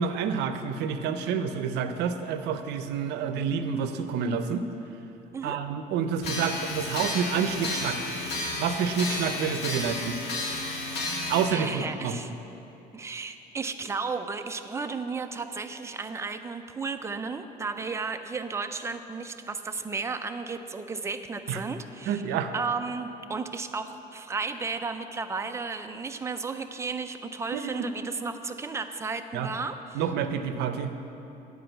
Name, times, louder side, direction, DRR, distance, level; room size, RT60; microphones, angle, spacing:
voice 1, 0.0-4.7 5.4-8.1 8.6-10.2 11.3-12.2 21.5-21.6 22.1-22.5 27.5-27.9 29.3-29.5 29.9-30.9, right 7 dB, 85° right, 9 dB, 0.6 m, -28 dB
sound 1, 6.2-11.5, left 2 dB, 75° left, 2.2 m, -32 dB
voice 2, 11.5-12.3 12.9-22.2 22.5-30.0, right 4 dB, 15° right, 7 dB, 0.5 m, -34 dB
9.8 x 4.7 x 7.9 m, 2.9 s
cardioid pair, 110°, 17 cm